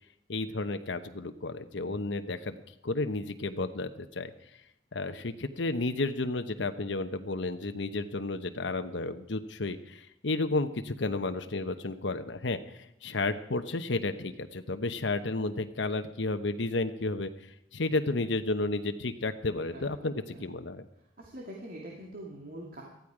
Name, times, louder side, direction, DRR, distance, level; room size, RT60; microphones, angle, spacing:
voice 1, 0.3-2.6 2.8-4.3 4.9-17.3 17.7-20.9, left 2 dB, 85° left, 8 dB, 1.0 m, -32 dB
voice 2, 19.7-20.5 21.2-22.8, right 1 dB, 50° right, -2 dB, 2.4 m, -44 dB
18.5 x 13.5 x 5.0 m, 0.78 s
head